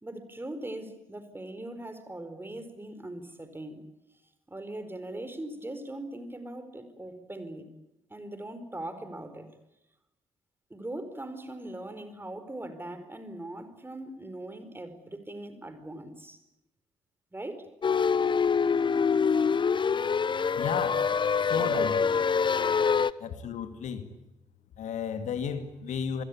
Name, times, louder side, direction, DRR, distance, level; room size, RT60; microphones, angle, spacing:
voice 1, 0.0-3.9 4.5-7.7 8.1-9.5 10.7-16.4 17.3-17.7 21.5-22.3, right 1 dB, 15° right, 10 dB, 4.7 m, -40 dB
sound 1, 17.8-23.1, left 6 dB, 35° left, 0.9 m, -25 dB
voice 2, 20.6-21.1 21.4-21.9 23.2-24.1 24.8-26.2, left 7 dB, 60° left, 9 dB, 2.3 m, -33 dB
27.5 x 22.5 x 8.6 m, 0.91 s
figure-of-eight pair, 40°, 14 cm